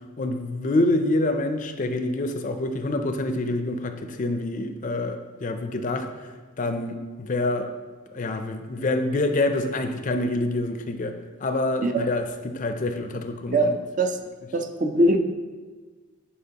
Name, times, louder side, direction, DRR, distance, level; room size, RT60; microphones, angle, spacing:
voice 1, 0.2-6.3 6.6-7.7 8.1-13.8, left 2 dB, 35° left, 7 dB, 0.4 m, -26 dB
voice 2, 13.5-14.2 14.5-15.2, right 1 dB, 40° right, 6 dB, 0.4 m, -22 dB
10.0 x 4.4 x 2.9 m, 1.4 s
head